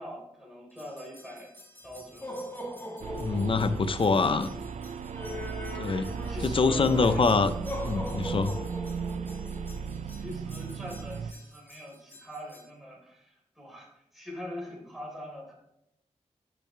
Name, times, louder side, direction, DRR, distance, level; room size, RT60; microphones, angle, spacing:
voice 1, 0.0-1.5 1.8-2.5 2.9-3.0 3.5-3.8 5.1-5.5 6.3-7.3 10.0-15.5, left 1 dB, ahead, -3 dB, 3.7 m, -43 dB
sound 1, 0.8-12.7, left 1 dB, 20° left, 1.6 m, -42 dB
sound 2, 3.0-11.3, right 5 dB, 70° right, 0.4 m, -36 dB
voice 2, 3.2-4.5 5.7-6.1 6.4-7.5 7.8-8.5, left 4 dB, 50° left, 12 dB, 0.6 m, -25 dB
11.5 x 6.9 x 3.3 m, 0.81 s
wide cardioid pair, 90°, 12 cm